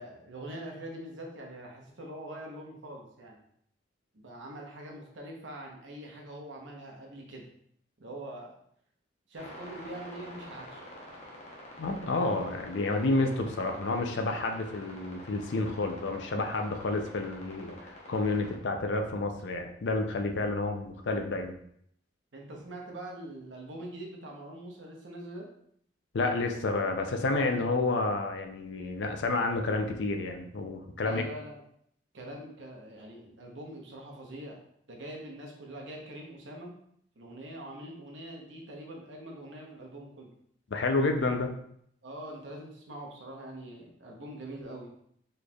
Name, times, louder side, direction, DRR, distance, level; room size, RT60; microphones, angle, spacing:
voice 1, 0.0-3.4 4.1-7.5 8.0-8.5 9.3-10.8 22.3-25.5 31.0-31.6 32.1-34.6 34.9-36.7 37.2-40.3 42.0-44.9, right 1 dB, 75° right, 0 dB, 0.8 m, -43 dB
sound 1, 9.3-18.6, left 1 dB, 35° left, 0.8 m, -48 dB
voice 2, 11.8-21.5 26.1-31.2 40.7-41.5, left 2 dB, 70° left, 5 dB, 0.5 m, -30 dB
4.2 x 3.2 x 2.3 m, 0.68 s
head